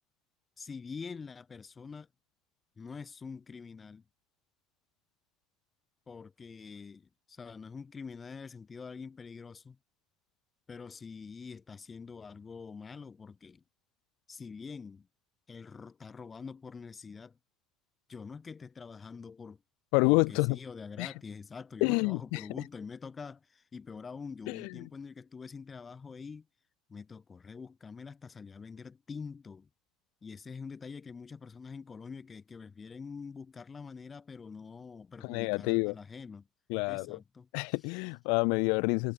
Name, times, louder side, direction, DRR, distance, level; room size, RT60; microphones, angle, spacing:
voice 1, 0.6-2.1 2.8-4.0 6.1-9.8 10.7-13.6 14.3-15.1 15.5-17.4 18.1-19.6 20.1-26.5 26.9-29.7 30.2-36.5 36.9-37.5, left 5 dB, 25° left, 1.1 m, -45 dB
voice 2, 19.9-20.6 21.0-21.1 21.8-22.5 24.5-24.9 35.2-36.0 36.7-37.2 37.5-39.1, left 36 dB, 85° left, 0.3 m, -28 dB
cardioid pair, 125°, 0 cm